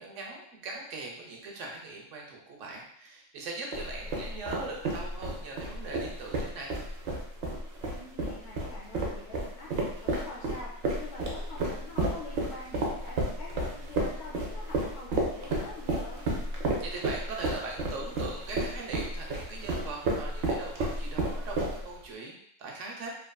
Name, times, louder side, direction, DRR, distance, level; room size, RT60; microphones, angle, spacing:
voice 1, 0.0-6.7 16.8-23.1, right 3 dB, 85° right, 0 dB, 1.0 m, -40 dB
sound 1, 3.7-22.0, right 2 dB, 60° right, 0.8 m, -31 dB
voice 2, 7.8-16.3, left 3 dB, 70° left, -4 dB, 0.8 m, -45 dB
2.8 x 2.4 x 2.2 m, 0.70 s
omnidirectional pair, 1.3 m